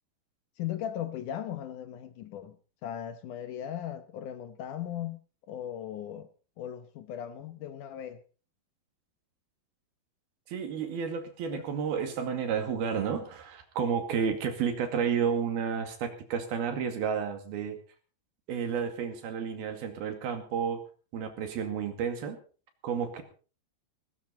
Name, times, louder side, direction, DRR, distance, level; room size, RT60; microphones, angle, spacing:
voice 1, 0.6-2.6 2.8-5.2 5.5-6.3 6.6-8.2 11.5-11.7, left 10 dB, 70° left, 2.2 m, -37 dB
voice 2, 10.5-17.8 18.5-20.8 21.1-22.4 22.8-23.2, right 7 dB, 80° right, 4.2 m, -31 dB
18.0 x 15.5 x 4.2 m
omnidirectional pair, 4.3 m